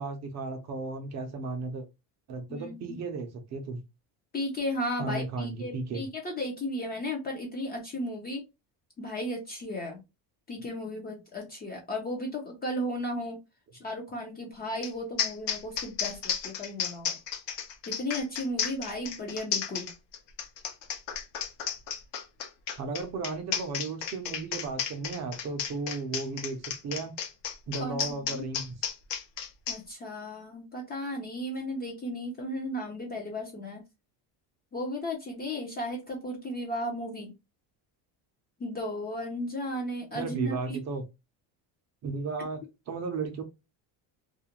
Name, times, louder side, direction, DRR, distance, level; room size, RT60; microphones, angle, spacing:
voice 1, 0.0-1.9 2.3-3.8 5.0-6.0 22.8-27.1 27.7-28.9 40.1-41.0 42.0-43.4, right 3 dB, 35° right, 0.5 m, -35 dB
voice 2, 2.5-3.0 4.3-8.4 9.0-10.0 10.5-13.4 13.8-17.2 17.9-19.9 27.8-28.5 29.7-33.8 34.7-37.3 38.6-40.8, left 1 dB, 20° left, 0.4 m, -35 dB
sound 1, 14.8-14.9 15.2-29.8, left 8 dB, 65° left, 0.7 m, -33 dB
2.4 x 2.1 x 2.8 m
cardioid pair, 155°, 46 cm